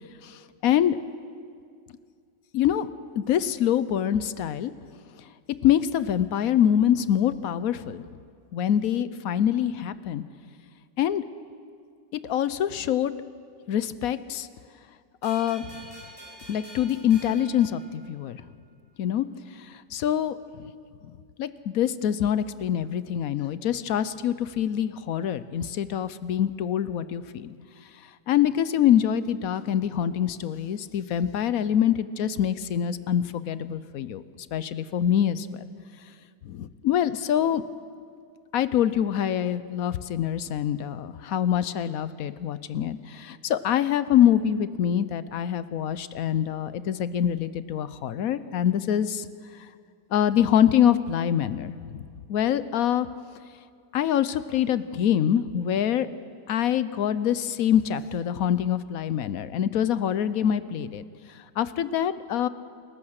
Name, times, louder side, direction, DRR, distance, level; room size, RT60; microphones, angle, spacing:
voice 1, 0.2-1.0 2.5-2.9 3.2-4.7 5.6-8.0 8.5-10.2 11.0-11.2 12.1-13.1 13.7-14.5 15.2-15.8 16.5-18.4 19.0-19.3 19.6-20.7 21.4-27.5 28.3-34.2 34.5-35.7 36.4-37.6 38.5-49.3 50.1-52.0 52.3-53.1 53.9-56.1 56.5-61.0 61.3-62.5, left 10 dB, 65° left, 14 dB, 0.9 m, -25 dB
sound 1, 15.2-18.5, right 1 dB, 20° right, 7.2 m, -47 dB
28.5 x 14.5 x 6.4 m, 2.2 s
omnidirectional pair, 1.9 m